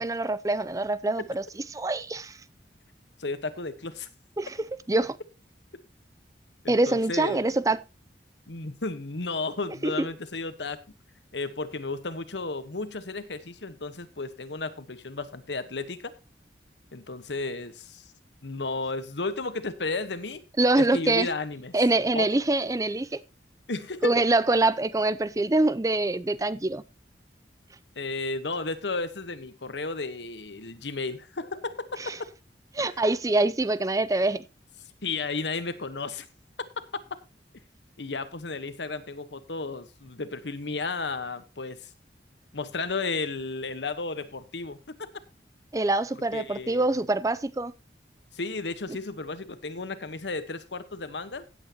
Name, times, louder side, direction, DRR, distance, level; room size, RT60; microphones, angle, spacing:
voice 1, 0.0-1.4 1.7-2.3 4.4-4.5 4.9-5.2 6.7-7.8 9.8-9.9 20.6-21.3 21.7-23.2 24.0-26.8 32.7-34.4 45.7-47.7, right 2 dB, 20° right, 0.5 m, -24 dB
voice 2, 3.2-4.1 6.6-7.4 8.5-10.8 11.3-16.1 16.9-18.0 18.4-20.4 20.8-21.7 22.1-22.3 23.7-24.2 27.9-32.0 32.8-33.0 35.0-36.3 38.0-41.9 42.5-45.1 46.3-46.9 48.3-51.5, left 3 dB, 90° left, 1.2 m, -33 dB
16.0 x 8.3 x 2.9 m
head